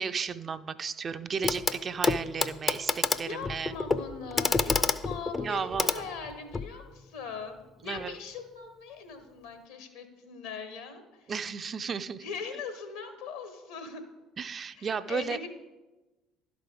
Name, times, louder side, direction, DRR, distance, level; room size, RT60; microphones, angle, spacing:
voice 1, 0.0-3.7 5.4-5.9 7.8-8.1 11.3-12.2 14.4-15.4, right 6 dB, 40° right, 12 dB, 0.3 m, -34 dB
Clock, 1.4-1.8 2.0-6.7 8.0-8.1, left 4 dB, 30° left, 0.4 m, -29 dB
voice 2, 3.2-11.3 12.2-14.0 14.8-15.5, left 5 dB, 75° left, 8 dB, 1.0 m, -40 dB
11.5 x 4.8 x 3.8 m, 1.1 s
figure-of-eight pair, 55°, 0 cm